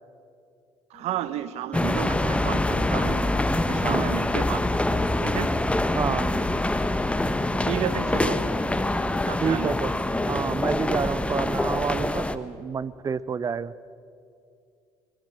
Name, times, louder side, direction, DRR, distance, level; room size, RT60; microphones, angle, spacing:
sound 1, 0.9-11.1, left 4 dB, 65° left, 5.0 m, -52 dB
voice 1, 0.9-3.2 3.7-4.6 4.9-5.5 7.6-8.4 9.3-9.7, right 12 dB, 60° right, 14 dB, 1.2 m, -32 dB
sound 2, 1.7-12.4, left 1 dB, 10° left, 1.2 m, -25 dB
voice 2, 3.8-4.1 5.9-6.3 9.4-9.9 10.3-13.7, right 6 dB, 30° right, 19 dB, 0.7 m, -28 dB
22.5 x 20.0 x 7.5 m, 2.4 s
hypercardioid pair, 60°, 12 cm